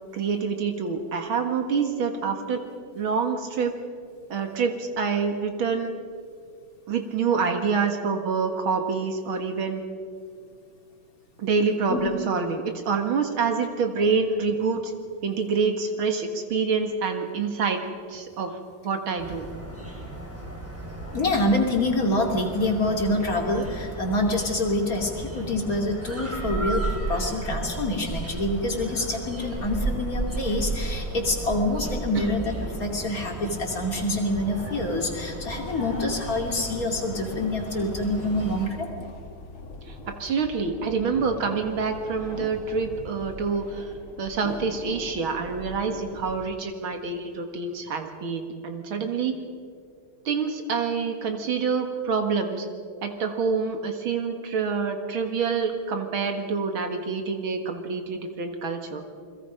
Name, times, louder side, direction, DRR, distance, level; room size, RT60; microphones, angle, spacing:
voice 1, 0.1-2.6 2.9-3.7 4.3-5.9 6.9-9.8 11.4-14.9 15.2-17.8 18.1-18.6 18.8-19.5 32.1-32.3 39.9-43.9 44.2-49.4 50.3-52.7 53.0-59.0, right 5 dB, 80° right, 5 dB, 2.6 m, -27 dB
sound 1, 19.2-38.7, right 2 dB, 5° right, 4.8 m, -34 dB
voice 2, 21.1-38.9, left 1 dB, 45° left, 2 dB, 3.0 m, -26 dB
sound 2, 32.3-46.4, left 3 dB, 85° left, 2.7 m, -42 dB
29.0 x 21.5 x 5.2 m, 2.2 s
omnidirectional pair, 2.2 m